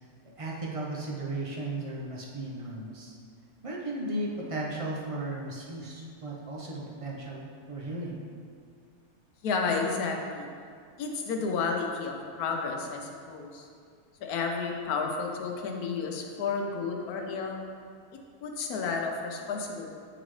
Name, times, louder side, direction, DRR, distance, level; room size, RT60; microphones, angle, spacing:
voice 1, 0.4-3.1 3.6-8.2, right 2 dB, 40° right, -3 dB, 0.5 m, -35 dB
voice 2, 9.4-10.5 11.0-13.7 14.2-17.6 18.4-19.9, left 4 dB, 80° left, 2 dB, 1.2 m, -31 dB
8.7 x 3.9 x 3.1 m, 2.2 s
omnidirectional pair, 1.6 m